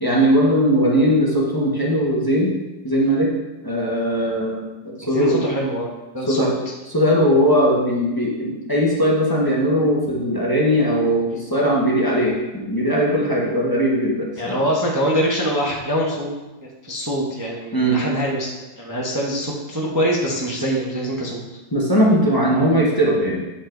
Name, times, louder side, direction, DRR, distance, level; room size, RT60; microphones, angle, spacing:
voice 1, 0.0-2.5 2.8-3.3 3.6-5.4 6.2-6.5 6.9-14.6 17.7-18.0 21.7-23.4, equal, 15° left, -3 dB, 0.8 m, -19 dB
voice 2, 5.0-6.5 14.4-16.3 16.8-21.4, equal, 15° right, -3 dB, 0.7 m, -24 dB
8.4 x 5.4 x 3.8 m, 1.1 s
omnidirectional pair, 2.1 m